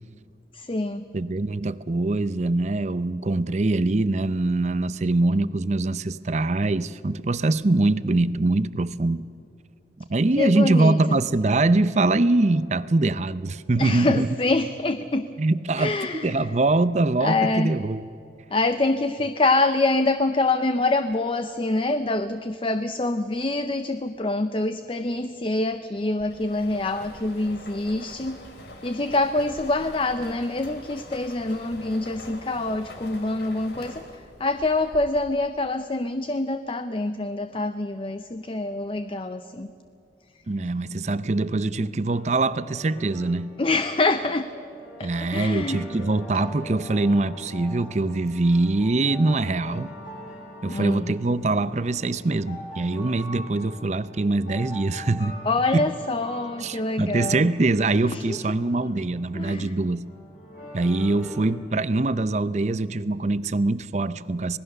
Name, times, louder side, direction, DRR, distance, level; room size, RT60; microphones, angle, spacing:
voice 1, 0.5-1.1 10.4-11.2 13.8-15.3 15.8-16.5 17.2-17.7 18.5-28.4 28.8-34.0 34.4-39.7 43.6-44.5 45.0-46.0 50.7-51.1 55.4-57.5 58.1-58.4 59.3-59.7, left 2 dB, 30° left, 10 dB, 0.6 m, -25 dB
voice 2, 1.1-9.2 10.1-14.3 15.4-15.9 16.2-18.1 40.5-43.5 45.0-49.9 50.6-55.4 55.7-55.9 56.6-60.0 60.7-64.6, right 2 dB, 40° right, 15 dB, 0.6 m, -23 dB
sound 1, 26.2-35.5, left 1 dB, 75° left, 2.6 m, -44 dB
sound 2, 42.1-61.5, equal, 50° left, 6.5 m, -43 dB
26.0 x 19.0 x 6.7 m, 2.5 s
head